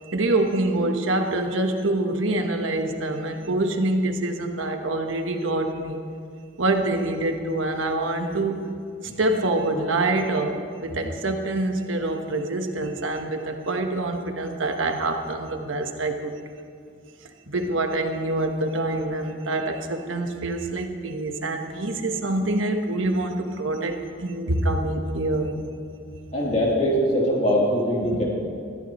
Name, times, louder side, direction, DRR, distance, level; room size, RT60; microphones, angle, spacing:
voice 1, 0.1-6.0 6.6-8.7 9.2-16.4 17.5-25.5, right 2 dB, 85° right, 4 dB, 1.3 m, -25 dB
voice 2, 26.3-28.2, equal, 35° left, -5 dB, 3.2 m, -22 dB
21.5 x 13.5 x 3.1 m, 2.3 s
head